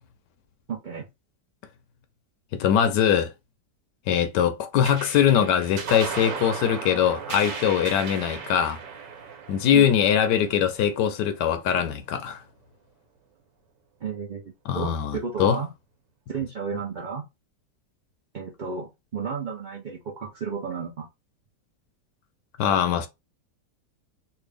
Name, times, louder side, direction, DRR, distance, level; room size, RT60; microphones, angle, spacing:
voice 1, 0.7-1.1 9.7-9.9 14.0-14.4 14.7-15.7 16.3-17.2 18.3-21.1, right 6 dB, 55° right, 0.5 m, -32 dB
voice 2, 2.5-3.3 4.1-8.8 9.5-12.4 14.7-15.6 22.6-23.1, left 9 dB, 80° left, 1.2 m, -22 dB
sound 1, 4.8-11.6, right 6 dB, 85° right, 1.6 m, -36 dB
3.4 x 2.5 x 3.3 m
omnidirectional pair, 1.8 m